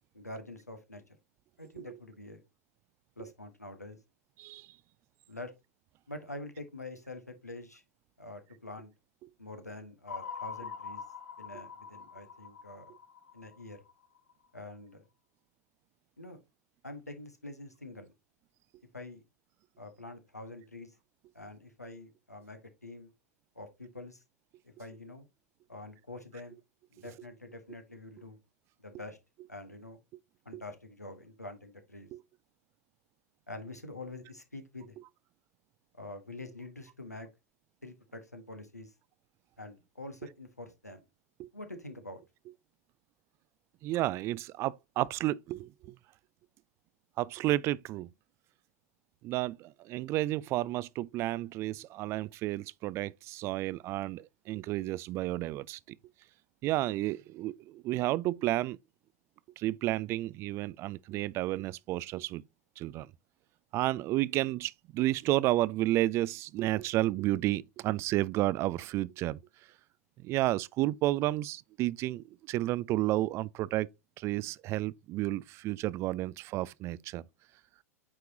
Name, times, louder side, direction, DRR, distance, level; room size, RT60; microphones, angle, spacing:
voice 1, 0.1-1.0 1.6-2.4 3.2-4.0 5.3-5.5 6.1-7.8 8.2-8.9 9.4-11.0 11.4-12.9 13.3-13.8 14.5-15.0 16.2-16.4 16.8-18.1 18.9-19.2 19.8-20.9 21.3-23.1 23.5-24.2 24.6-25.3 25.7-26.6 26.9-28.4 28.8-29.2 29.5-30.0 30.4-32.1 33.5-35.0 35.9-37.3 37.8-38.9 39.6-41.0 41.5-42.2, left 2 dB, 85° left, 1.3 m, -46 dB
sound 1, 10.1-14.3, left 6 dB, 70° left, 0.9 m, -44 dB
voice 2, 43.8-45.9 47.2-48.1 49.2-56.0 56.6-58.8 59.6-62.4 62.8-63.1 63.7-69.4 70.2-73.9 74.2-77.2, right 16 dB, 30° right, 0.3 m, -31 dB
8.5 x 4.6 x 2.7 m
figure-of-eight pair, 90°, 8 cm